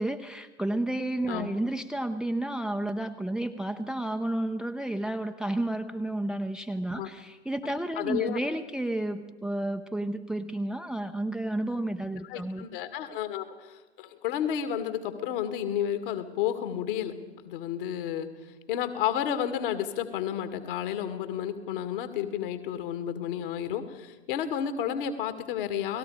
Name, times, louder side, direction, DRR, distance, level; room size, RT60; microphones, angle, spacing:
voice 1, 0.0-12.7, right 1 dB, ahead, 8 dB, 0.7 m, -31 dB
voice 2, 8.0-8.4 12.2-17.1 17.4-18.3 18.7-26.0, left 9 dB, 55° left, 9 dB, 2.3 m, -31 dB
30.0 x 19.5 x 5.0 m, 1.2 s
figure-of-eight pair, 90°, 33 cm